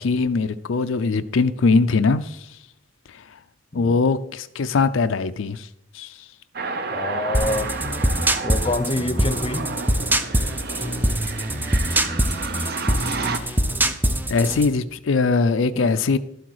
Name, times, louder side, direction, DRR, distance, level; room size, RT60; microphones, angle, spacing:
voice 1, 0.0-2.5 3.7-5.7 5.9-6.2 13.4-13.6 14.3-16.2, left 4 dB, 80° left, 0.5 m, -21 dB
sound 1, 6.5-13.4, right 4 dB, 55° right, 0.8 m, -31 dB
voice 2, 6.9-7.7 8.4-9.7 15.7-15.9, left 2 dB, 30° left, 0.6 m, -26 dB
sound 2, 7.3-14.7, right 1 dB, 10° right, 0.5 m, -23 dB
12.0 x 7.9 x 4.7 m
head